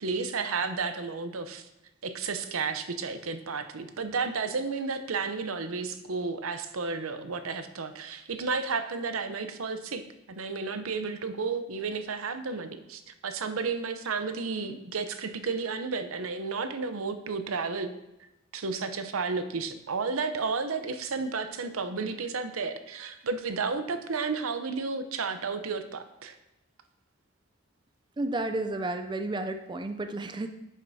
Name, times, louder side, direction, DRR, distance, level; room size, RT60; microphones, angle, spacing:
voice 1, 0.0-1.7 2.0-10.0 10.3-17.9 18.5-26.4, right 4 dB, 90° right, 9 dB, 0.7 m, -32 dB
voice 2, 28.2-30.5, right 2 dB, 20° right, 8 dB, 0.3 m, -32 dB
10.0 x 7.4 x 2.7 m, 0.92 s
head